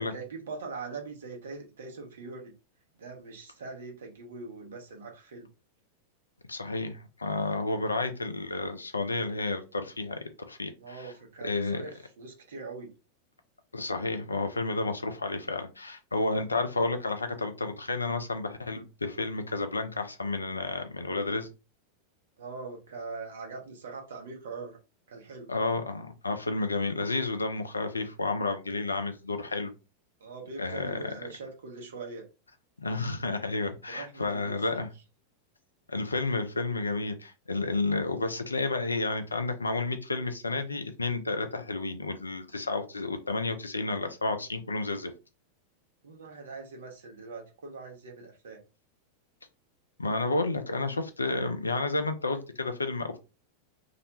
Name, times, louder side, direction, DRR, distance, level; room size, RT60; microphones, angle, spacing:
voice 1, 0.0-2.5 3.0-5.5 10.8-12.9 22.4-24.8 25.1-25.5 30.2-32.3 33.9-34.8 46.0-48.6, right 4 dB, 65° right, 0.7 m, -42 dB
voice 2, 6.5-11.1 11.4-11.8 13.7-21.5 25.5-29.7 30.6-31.0 32.8-34.9 35.9-45.1 50.0-53.2, left 3 dB, 80° left, 0.4 m, -31 dB
2.4 x 2.1 x 2.9 m
figure-of-eight pair, 90°, 0 cm